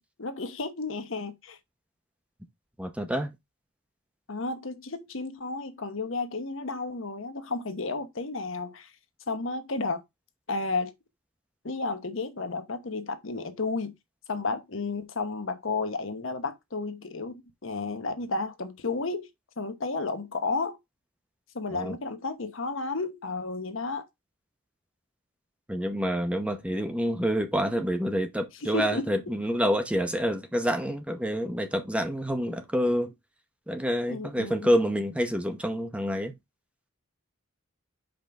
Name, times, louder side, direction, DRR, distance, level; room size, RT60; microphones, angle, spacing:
voice 1, 0.2-1.6 4.3-8.9 9.3-10.0 10.5-10.9 11.6-13.9 14.3-19.3 19.6-20.8 21.5-24.1 28.6-29.1 34.1-34.7, left 3 dB, 65° left, 1.0 m, -32 dB
voice 2, 2.8-3.3 21.7-21.9 25.7-33.1 33.7-36.3, equal, 5° right, 0.8 m, -27 dB
5.2 x 3.8 x 5.8 m
head